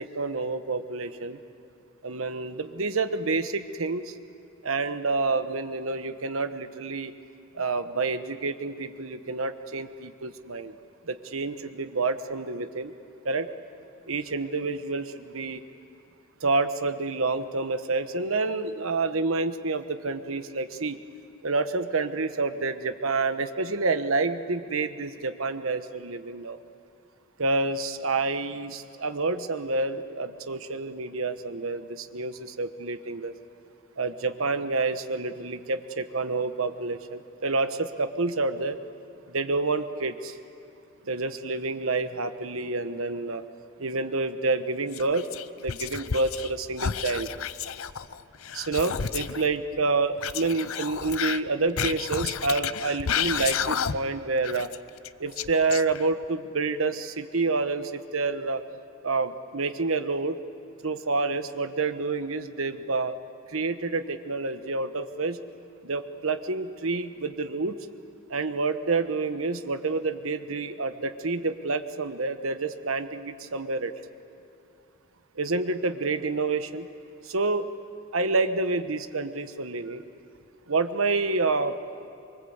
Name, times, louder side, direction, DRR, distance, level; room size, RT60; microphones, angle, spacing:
voice 1, 0.0-1.4 2.0-4.2 4.6-7.1 7.5-10.7 11.1-12.9 13.2-13.5 14.1-15.6 16.4-21.0 21.4-26.6 27.4-33.3 34.0-38.8 39.3-40.4 41.1-43.4 43.8-45.3 45.6-47.3 48.5-54.7 55.2-58.6 59.0-60.4 60.8-63.1 63.5-65.4 65.8-67.8 68.3-73.9 75.3-76.9 77.2-77.7 78.1-80.0 80.7-81.7, right 3 dB, 80° right, 9 dB, 1.2 m, -28 dB
Whispering, 44.9-46.5 46.8-49.4 50.2-54.2 54.4-56.3, left 8 dB, 80° left, 0.6 m, -31 dB
24.5 x 24.0 x 8.1 m, 2.7 s
head